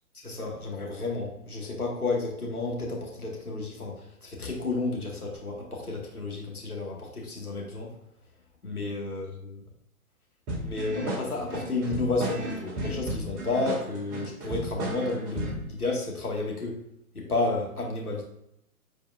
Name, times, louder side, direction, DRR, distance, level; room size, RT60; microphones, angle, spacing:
voice 1, 0.2-7.9 8.6-9.6 10.6-16.8 17.1-18.2, left 3 dB, 90° left, -1 dB, 2.1 m, -31 dB
sound 1, 10.5-15.7, right 1 dB, 30° right, 2.4 m, -34 dB
7.8 x 4.7 x 2.6 m, 0.78 s
figure-of-eight pair, 125°, 43 cm